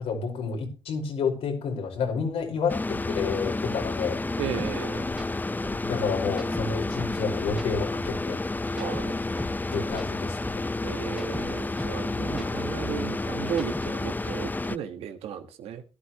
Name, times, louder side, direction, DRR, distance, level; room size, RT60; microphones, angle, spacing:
voice 1, 0.0-4.2 5.8-8.4 9.7-10.7, left 5 dB, 85° left, 4.8 m, -30 dB
sound 1, 2.7-14.8, left 2 dB, 20° left, 0.6 m, -30 dB
voice 2, 4.4-5.1 8.8-9.2 10.8-15.8, right 9 dB, 90° right, 1.6 m, -35 dB
sound 2, 4.6-4.7 5.1-5.3 5.6-7.2 7.5-9.6 9.9-12.0 12.3-14.1, equal, 5° right, 2.6 m, -41 dB
16.5 x 12.0 x 3.0 m
supercardioid pair, 55°, 10 cm